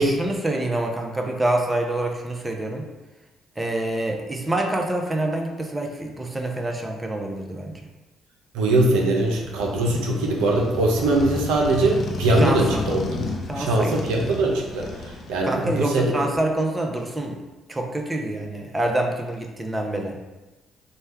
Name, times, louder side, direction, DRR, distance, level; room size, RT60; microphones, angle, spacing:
voice 1, 0.0-2.9 3.6-7.8 12.3-12.8 13.5-14.1 15.4-17.4 17.7-20.2, right 1 dB, 20° right, 2 dB, 0.7 m, -26 dB
voice 2, 8.5-13.3 13.6-16.2, right 2 dB, 80° right, 0 dB, 0.6 m, -21 dB
Motorcycle, 9.3-16.0, left 3 dB, 55° left, 0.5 m, -32 dB
3.3 x 2.3 x 4.3 m, 1.1 s
hypercardioid pair, 55°, 0 cm